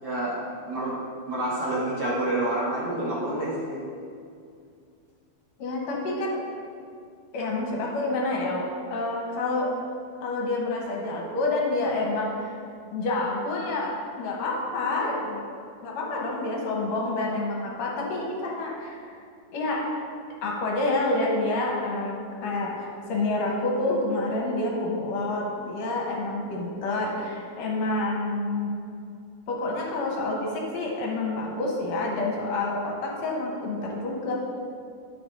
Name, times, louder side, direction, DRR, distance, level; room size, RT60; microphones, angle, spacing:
voice 1, 0.0-0.4 0.7-1.0 1.3-3.8, right 1 dB, 60° right, -8 dB, 1.0 m, -28 dB
voice 2, 5.6-6.4 7.3-9.7 10.2-12.6 12.9-15.4 15.8-19.2 19.5-19.8 20.4-28.7 29.5-34.3, left 2 dB, 65° left, -2 dB, 1.9 m, -28 dB
12.0 x 5.5 x 2.6 m, 2.4 s
omnidirectional pair, 3.8 m